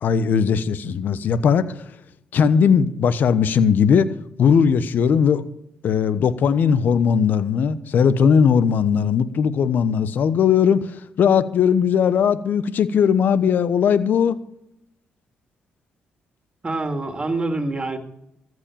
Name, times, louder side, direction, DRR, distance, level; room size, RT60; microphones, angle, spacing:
voice 1, 0.0-1.7 2.3-4.1 4.4-5.4 5.8-10.9 11.2-14.4, left 7 dB, 65° left, 14 dB, 1.0 m, -18 dB
voice 2, 16.6-18.0, right 2 dB, 30° right, 6 dB, 2.4 m, -25 dB
14.5 x 7.9 x 7.1 m, 0.77 s
supercardioid pair, 55°, 3 cm